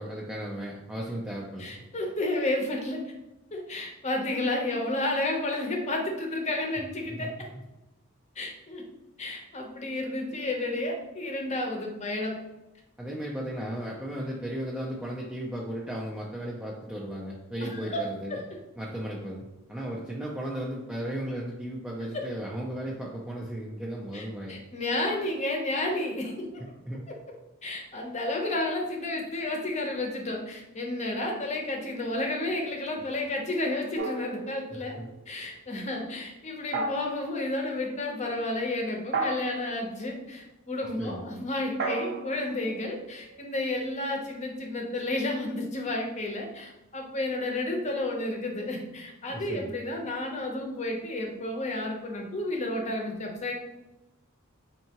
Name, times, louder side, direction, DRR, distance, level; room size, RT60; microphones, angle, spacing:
voice 1, 0.0-1.8 7.2-7.6 13.0-18.4 18.8-24.6 26.8-27.0 35.0-35.1 41.0-41.2 49.3-49.7, right 1 dB, 5° right, -4 dB, 0.4 m, -35 dB
voice 2, 1.6-3.0 3.5-7.5 8.4-8.8 9.2-12.3 17.6-18.0 18.3-18.4 22.1-22.2 24.1-26.5 27.6-34.9 35.3-53.5, left 2 dB, 35° left, 1 dB, 0.7 m, -31 dB
sound 1, 34.0-35.1 36.7-37.4 39.1-39.8 41.8-43.6, right 3 dB, 50° right, 0.6 m, -34 dB
4.4 x 2.7 x 2.8 m, 0.97 s
head